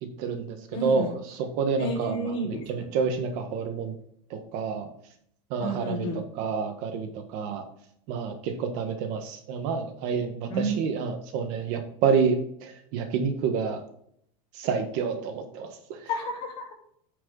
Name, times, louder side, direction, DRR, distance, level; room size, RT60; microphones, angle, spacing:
voice 1, 0.0-4.0 4.3-4.9 5.5-7.6 8.1-13.8 14.5-16.1, right 5 dB, 50° right, 6 dB, 1.4 m, -29 dB
voice 2, 0.7-1.1 1.8-2.8 5.6-6.2 10.5-10.7 16.1-16.7, right 1 dB, 35° left, -4 dB, 3.8 m, -31 dB
9.4 x 6.6 x 3.9 m, 0.68 s
supercardioid pair, 165°, 16 cm